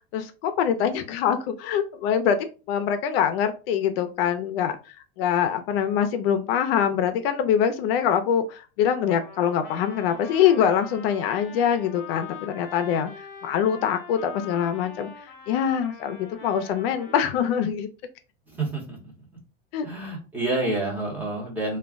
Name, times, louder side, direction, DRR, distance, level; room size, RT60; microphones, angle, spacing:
voice 1, 0.1-13.1 13.4-17.9 19.7-19.9, left 8 dB, 65° left, 8 dB, 0.5 m, -24 dB
Trumpet, 9.1-17.6, left 6 dB, 35° left, 0.7 m, -43 dB
voice 2, 18.5-19.1 19.8-21.8, right 2 dB, 5° right, -4 dB, 0.8 m, -28 dB
2.2 x 2.1 x 3.5 m, 0.33 s
supercardioid pair, 155°, 31 cm